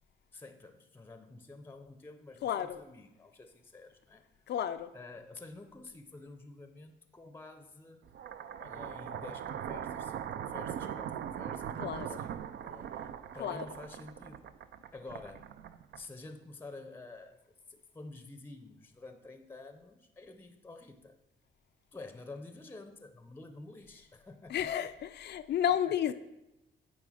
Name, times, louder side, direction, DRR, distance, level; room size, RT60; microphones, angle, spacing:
voice 1, 0.3-4.2 4.9-8.0 8.6-12.9 13.3-14.5 14.9-15.6 15.9-21.2 21.9-24.9, left 3 dB, 10° left, 0.6 m, -49 dB
voice 2, 2.4-2.8 4.5-4.9 11.8-12.2 13.4-13.7 24.5-26.1, left 10 dB, 60° left, 0.4 m, -32 dB
sound 1, 8.1-16.3, right 9 dB, 60° right, 0.4 m, -40 dB
9.0 x 3.7 x 4.9 m
cardioid pair, 90°, 20 cm